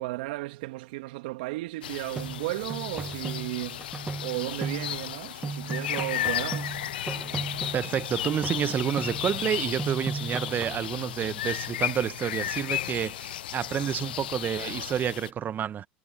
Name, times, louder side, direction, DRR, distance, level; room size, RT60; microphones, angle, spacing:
voice 1, 0.0-3.9 4.2-6.8, right 21 dB, 70° right, 2.4 m, -34 dB
sound 1, 1.8-15.3, left 13 dB, 80° left, 0.4 m, -34 dB
sound 2, 2.2-5.2 5.4-8.1 8.4-9.5 9.8-10.9, right 4 dB, 20° right, 1.4 m, -36 dB
voice 2, 7.7-15.9, right 9 dB, 35° right, 1.3 m, -29 dB
hypercardioid pair, 85°, 5 cm